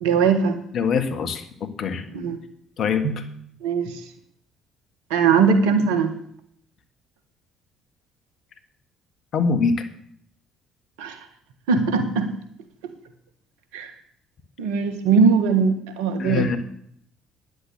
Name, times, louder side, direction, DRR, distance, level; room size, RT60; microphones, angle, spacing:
voice 1, 0.0-0.6 2.1-2.4 3.0-3.3 3.6-4.0 5.1-6.1 11.0-11.2 11.7-12.3 13.7-13.9 14.6-16.5, right 5 dB, 70° right, 9 dB, 1.5 m, -20 dB
voice 2, 0.7-2.0 2.8-3.2 9.3-9.8 16.2-16.6, left 5 dB, 55° left, 8 dB, 1.7 m, -23 dB
10.5 x 8.2 x 8.7 m, 0.68 s
hypercardioid pair, 50°, 0 cm